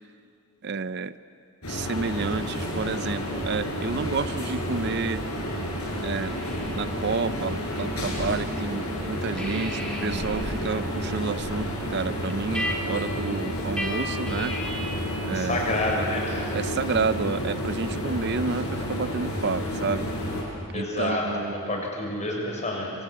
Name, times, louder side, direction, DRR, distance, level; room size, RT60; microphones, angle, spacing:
voice 1, 0.6-1.1 1.7-5.2 6.0-6.4 6.8-14.6 15.3-15.8 16.5-20.1 20.7-21.8, right 4 dB, 50° right, 14 dB, 0.6 m, -30 dB
sound 1, 1.6-20.4, equal, 90° left, 7.4 m, -30 dB
sound 2, 6.2-8.7 9.0-15.1, equal, 5° left, 3.5 m, -37 dB
voice 2, 15.3-16.5 20.7-21.3 21.5-22.9, left 2 dB, 30° left, 0 dB, 6.4 m, -28 dB
26.5 x 25.0 x 8.8 m, 2.4 s
head